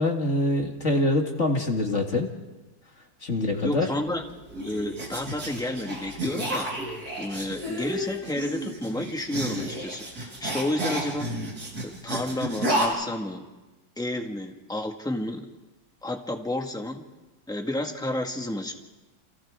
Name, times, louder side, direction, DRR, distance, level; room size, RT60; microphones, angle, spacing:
voice 1, 0.0-2.3 3.2-3.9, left 2 dB, 40° left, 2 dB, 2.2 m, -24 dB
voice 2, 3.3-6.7 7.2-11.3 11.8-13.4 14.0-15.5 16.0-17.0 17.5-18.7, left 1 dB, ahead, 3 dB, 1.6 m, -31 dB
sound 1, 4.1-12.9, right 1 dB, 50° right, 4.5 m, -32 dB
29.5 x 27.5 x 3.7 m, 1.1 s
omnidirectional pair, 2.1 m